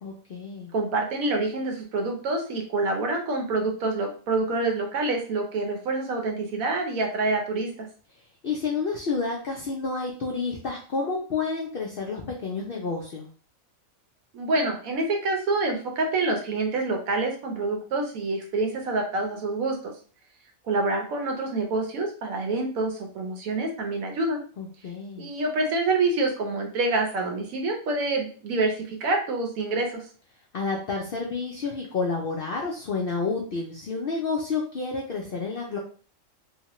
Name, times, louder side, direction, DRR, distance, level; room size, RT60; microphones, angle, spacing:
voice 1, 0.0-0.7 8.4-13.3 24.6-25.3 30.5-35.8, left 4 dB, 65° left, -1 dB, 0.5 m, -30 dB
voice 2, 0.7-7.9 14.3-19.8 20.7-24.4 25.2-30.0, right 2 dB, 80° right, 2 dB, 1.2 m, -27 dB
3.0 x 2.1 x 2.9 m, 0.43 s
omnidirectional pair, 1.4 m